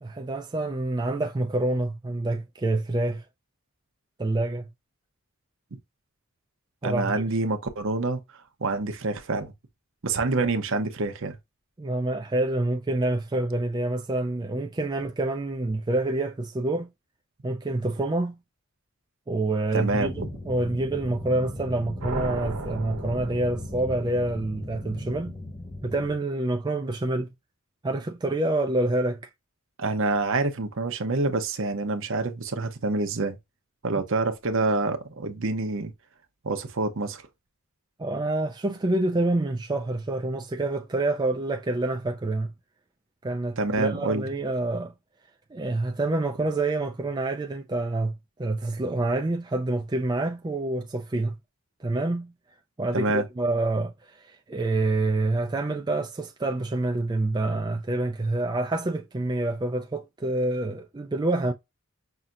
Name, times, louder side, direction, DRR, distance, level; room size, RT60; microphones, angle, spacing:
voice 1, 0.0-3.2 4.2-4.6 6.8-7.2 10.4-10.5 11.8-16.9 17.4-18.4 19.3-20.1 20.5-25.4 25.8-27.3 27.8-29.2 38.0-42.5 43.2-44.9 45.5-51.4 51.8-52.3 52.8-53.9 54.2-61.5, right 2 dB, 20° right, 0.4 m, -27 dB
voice 2, 6.8-8.2 8.6-9.5 10.0-11.4 19.7-20.3 29.8-33.4 33.8-35.9 36.4-37.2 43.6-44.2 52.9-53.3, right 3 dB, 60° right, 0.8 m, -27 dB
sound 1, 19.8-26.2, left 1 dB, 15° left, 1.1 m, -38 dB
sound 2, 22.0-24.2, right 2 dB, 90° right, 1.2 m, -35 dB
5.7 x 2.7 x 2.5 m
head